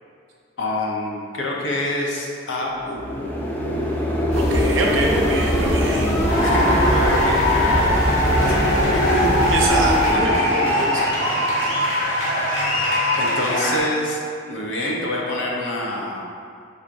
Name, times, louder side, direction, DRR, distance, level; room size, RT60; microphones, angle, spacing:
voice 1, 0.6-3.0 6.4-9.2 13.2-14.2 14.5-16.3, left 1 dB, 70° left, -2 dB, 0.7 m, -26 dB
sound 1, 2.8-11.8, equal, 10° left, 0.3 m, -24 dB
sound 2, 4.3-10.1, equal, 35° left, 0.8 m, -25 dB
voice 2, 4.3-6.2 9.5-11.2, right 2 dB, 75° right, -1 dB, 0.7 m, -24 dB
sound 3, 6.3-13.8, left 1 dB, 90° left, 1.4 m, -21 dB
4.7 x 4.2 x 2.6 m, 2.4 s
head